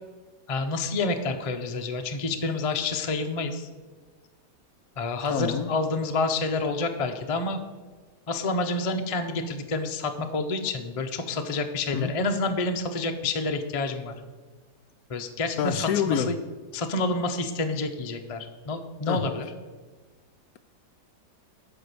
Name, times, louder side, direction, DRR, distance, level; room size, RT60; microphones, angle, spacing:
voice 1, 0.5-3.7 5.0-7.6 8.3-14.2 15.1-16.3 16.7-19.5, left 3 dB, 40° left, 5 dB, 0.5 m, -28 dB
voice 2, 5.3-5.7 11.9-12.1 15.6-16.3 19.1-19.2, left 8 dB, 70° left, 10 dB, 0.9 m, -26 dB
12.5 x 4.8 x 6.8 m, 1.4 s
omnidirectional pair, 1.8 m